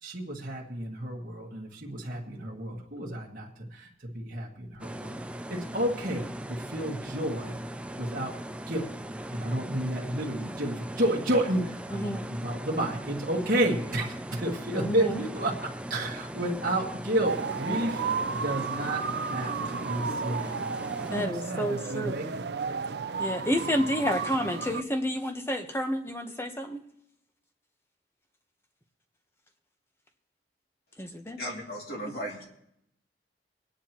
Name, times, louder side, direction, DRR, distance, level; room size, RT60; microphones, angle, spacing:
voice 1, 0.0-7.6 8.0-8.3 8.7-8.9 9.3-18.0 18.3-20.6 21.1-22.5, right 1 dB, 50° right, -4 dB, 1.8 m, -31 dB
sound 1, 4.8-21.3, right 1 dB, 5° right, 0.4 m, -39 dB
voice 2, 14.7-15.1 21.1-22.2 23.2-26.8 31.0-31.4, equal, 15° left, 6 dB, 1.0 m, -30 dB
sound 2, 17.2-24.8, right 5 dB, 65° right, 0.5 m, -33 dB
voice 3, 31.4-32.4, equal, 55° left, -1 dB, 2.6 m, -36 dB
24.0 x 10.0 x 3.0 m, 0.78 s
head